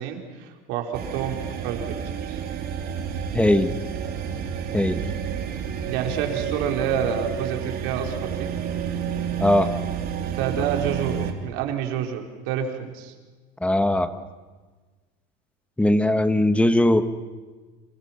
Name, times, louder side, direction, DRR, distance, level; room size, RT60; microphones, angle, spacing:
voice 1, 0.0-2.4 5.9-8.5 10.3-13.1, right 8 dB, 75° right, 3 dB, 4.2 m, -28 dB
sound 1, 0.9-11.3, right 8 dB, 45° right, 3.5 m, -30 dB
voice 2, 3.3-3.7 4.7-5.0 9.4-9.7 13.6-14.1 15.8-17.0, left 1 dB, 5° left, 10 dB, 1.5 m, -19 dB
29.0 x 27.0 x 5.9 m, 1.4 s
supercardioid pair, 120°, 21 cm